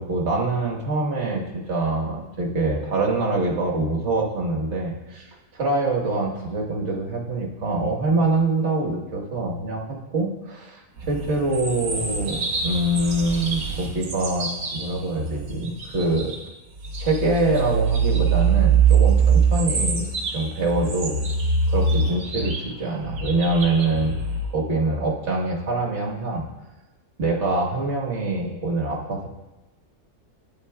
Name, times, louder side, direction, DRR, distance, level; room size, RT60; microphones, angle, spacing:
voice 1, 0.0-16.3 17.0-20.0 20.3-21.2 21.7-24.2 24.5-26.5 27.2-29.3, right 2 dB, 50° right, -1 dB, 1.6 m, -25 dB
sound 1, 11.0-16.4 16.8-24.5, right 5 dB, 70° right, 1.5 m, -23 dB
11.5 x 9.3 x 2.3 m, 1.0 s
omnidirectional pair, 1.6 m